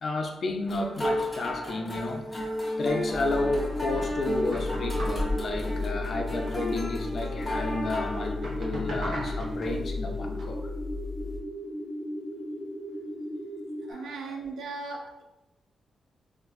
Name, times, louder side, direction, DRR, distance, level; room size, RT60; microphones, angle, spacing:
voice 1, 0.0-2.4 2.8-10.7 13.9-14.4, left 2 dB, 50° left, 4 dB, 0.4 m, -32 dB
sound 1, 0.7-8.3, left 1 dB, 10° left, 0.7 m, -33 dB
sound 2, 3.1-11.4, left 3 dB, 70° right, 0.9 m, -34 dB
sound 3, 3.4-13.9, equal, 30° right, 0.6 m, -37 dB
voice 2, 13.9-15.2, right 3 dB, 85° right, 3 dB, 0.4 m, -37 dB
3.5 x 2.5 x 2.3 m, 0.97 s
wide cardioid pair, 135°, 0 cm